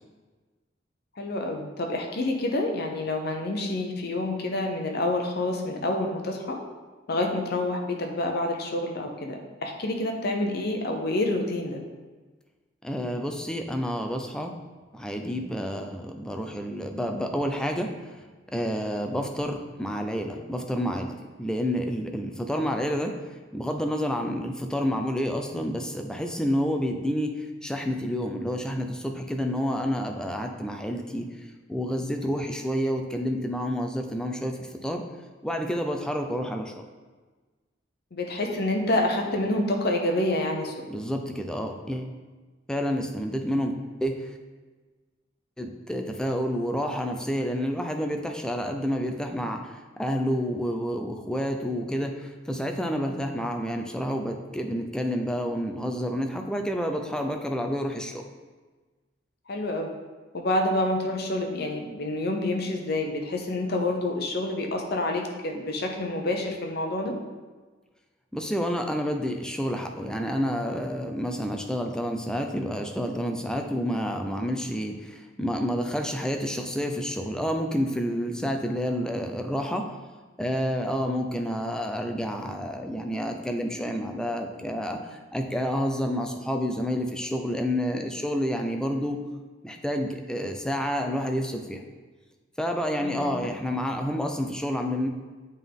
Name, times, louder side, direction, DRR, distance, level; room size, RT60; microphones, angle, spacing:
voice 1, 1.2-6.6 7.1-11.8 38.1-40.7 59.5-59.9 60.3-67.1 93.0-93.3, left 1 dB, 55° left, 3 dB, 0.8 m, -28 dB
voice 2, 12.8-14.5 14.9-17.9 18.5-23.1 23.5-31.3 31.7-35.0 35.4-36.8 40.9-42.1 42.7-43.7 44.0-44.3 45.6-58.2 68.3-80.0 80.4-89.2 89.6-91.8 92.6-95.1, equal, 5° left, 4 dB, 0.5 m, -29 dB
8.1 x 3.7 x 3.6 m, 1.3 s
head